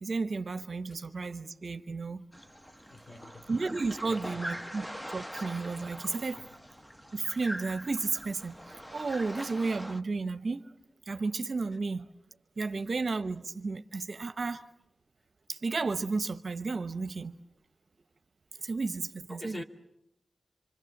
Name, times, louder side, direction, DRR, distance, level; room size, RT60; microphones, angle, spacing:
voice 1, 0.0-2.3 3.5-6.4 7.1-10.7 11.1-12.1 12.6-14.6 15.5-17.3 18.6-19.6, right 3 dB, 65° right, 0.9 m, -33 dB
sound 1, 2.3-10.0, equal, 5° left, 1.0 m, -43 dB
voice 2, 2.9-3.5 4.0-4.4 19.3-19.6, left 1 dB, 25° left, 2.2 m, -44 dB
26.0 x 25.0 x 7.2 m
wide cardioid pair, 80°, 0 cm